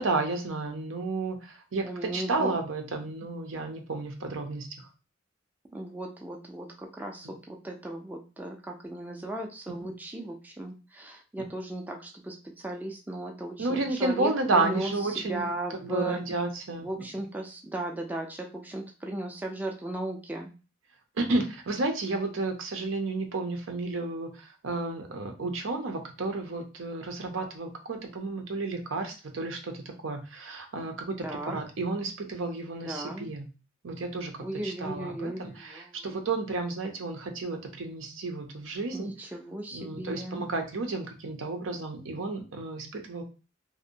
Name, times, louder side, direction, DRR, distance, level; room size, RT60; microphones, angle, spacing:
voice 1, 0.0-1.8 2.1-4.7 7.2-7.3 9.7-9.9 13.6-16.9 17.2-17.3 21.2-33.5 33.8-34.3 34.6-39.1 39.7-43.2, right 3 dB, 85° right, 4 dB, 0.6 m, -32 dB
voice 2, 1.8-2.5 5.7-16.2 16.8-20.5 31.2-31.6 32.8-33.3 34.4-36.1 38.9-40.5, right 1 dB, 10° right, 1 dB, 0.3 m, -36 dB
2.7 x 2.1 x 2.5 m, 0.33 s
head